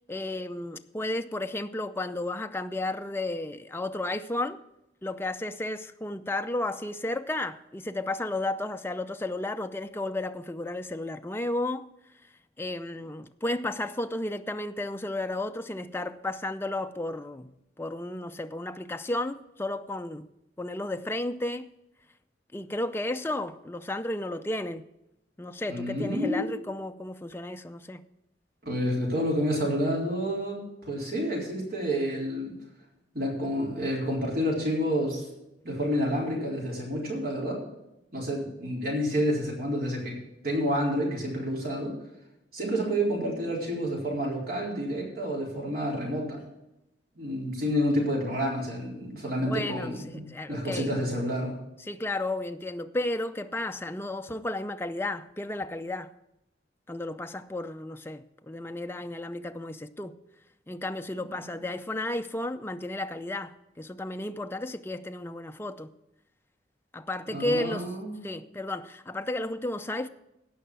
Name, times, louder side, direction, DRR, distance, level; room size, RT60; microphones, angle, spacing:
voice 1, 0.1-4.6 5.0-11.9 12.6-20.3 20.6-21.7 22.5-24.9 25.4-28.0 49.4-50.9 51.9-56.1 56.9-60.1 60.7-65.9 66.9-67.9 68.2-70.1, left 2 dB, 15° left, 0.5 m, -33 dB
voice 2, 25.7-26.5 28.6-32.5 33.1-35.3 35.6-37.6 38.1-40.2 40.4-41.9 42.5-46.4 47.2-51.5 67.3-68.2, equal, 55° right, 3.9 m, -29 dB
16.5 x 5.7 x 6.2 m
head